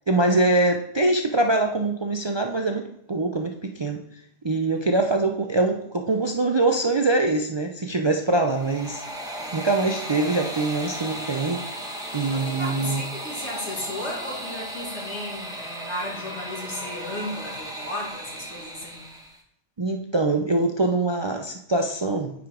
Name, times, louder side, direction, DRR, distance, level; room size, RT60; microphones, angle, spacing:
voice 1, 0.1-4.0 4.4-9.0 9.5-11.6 12.1-13.0 19.8-22.3, right 2 dB, 40° right, 3 dB, 0.4 m, -23 dB
voice 2, 4.5-4.9 9.4-9.7 12.3-19.1, left 1 dB, 75° left, -2 dB, 2.5 m, -35 dB
sound 1, 8.3-19.4, right 1 dB, 5° right, 1.0 m, -36 dB
9.0 x 5.0 x 3.7 m, 0.72 s
omnidirectional pair, 1.2 m